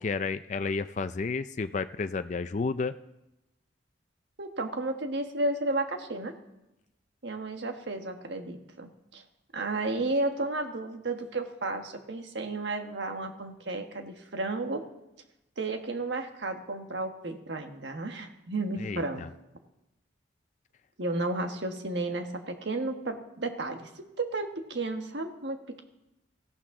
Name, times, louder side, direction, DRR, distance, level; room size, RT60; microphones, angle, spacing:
voice 1, 0.0-2.9 18.8-19.3, left 4 dB, 40° left, 11 dB, 0.4 m, -31 dB
voice 2, 4.4-6.3 7.2-9.2 9.5-14.9 15.6-19.3 21.0-25.8, right 2 dB, 75° right, 5 dB, 1.4 m, -33 dB
17.5 x 14.0 x 3.7 m, 0.92 s
head